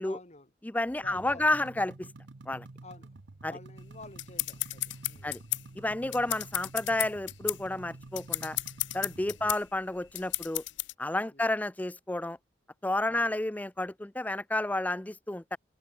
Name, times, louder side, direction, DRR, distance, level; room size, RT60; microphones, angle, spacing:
voice 1, 0.0-0.5 1.0-1.6 2.8-3.1 3.4-5.4 9.4-9.6 11.3-11.5 13.1-13.4, left 3 dB, 35° left, 3.5 m, -50 dB
voice 2, 0.6-2.1 2.5-2.7 3.4-3.5 5.2-5.4 5.8-8.6 8.9-10.6 11.0-12.4 12.8-15.6, left 2 dB, 10° left, 0.4 m, -31 dB
sound 1, 1.0-9.5, right 2 dB, 75° right, 0.9 m, -49 dB
sound 2, 3.8-10.9, left 19 dB, 75° left, 0.6 m, -34 dB
head